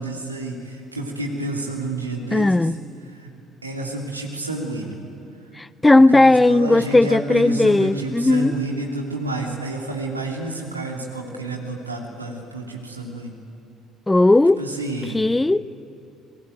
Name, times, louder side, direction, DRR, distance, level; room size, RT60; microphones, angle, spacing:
voice 1, 0.0-2.7 3.2-3.3 3.6-5.0 6.1-13.4 14.6-15.2, right 2 dB, 85° right, 1 dB, 3.0 m, -29 dB
voice 2, 2.3-2.8 5.6-8.5 14.1-14.6 15.0-15.6, left 2 dB, 15° left, 19 dB, 0.6 m, -16 dB
30.0 x 21.5 x 9.2 m, 2.6 s
figure-of-eight pair, 55°, 0 cm